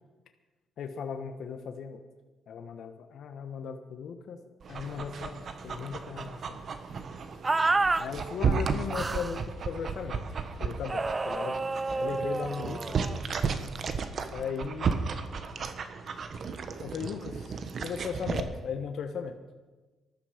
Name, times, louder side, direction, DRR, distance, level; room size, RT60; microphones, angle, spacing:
voice 1, 0.8-2.0 2.5-4.4 4.7-6.6 8.0-10.2 10.6-12.8 14.3-14.9 16.8-19.3, left 6 dB, 70° left, 6 dB, 1.2 m, -37 dB
Dog, 4.6-18.4, right 5 dB, 50° right, 1.3 m, -34 dB
sound 1, 7.4-8.1 8.9-9.4 10.9-13.2, right 3 dB, 25° right, 0.4 m, -29 dB
19.5 x 13.0 x 5.1 m, 1.2 s
cardioid pair, 90°, 0 cm